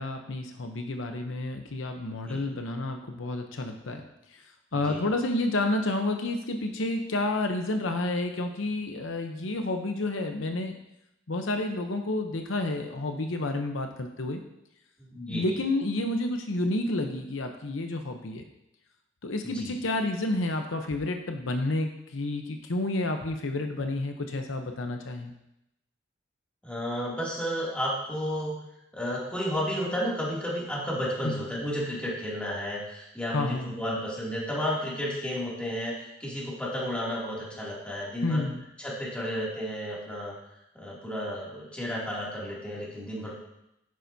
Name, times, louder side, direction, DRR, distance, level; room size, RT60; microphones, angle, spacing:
voice 1, 0.0-4.0 4.3-4.4 4.7-10.8 11.3-14.4 15.3-18.4 19.2-25.3 31.2-31.4 33.3-33.7 38.2-38.6, left 2 dB, 80° left, 5 dB, 0.8 m, -30 dB
voice 2, 15.0-15.6 19.4-19.8 26.6-28.5 28.9-35.9 36.2-38.4 38.8-40.3 40.7-43.3, equal, 5° left, -6 dB, 2.6 m, -32 dB
10.5 x 9.6 x 2.7 m, 0.86 s
head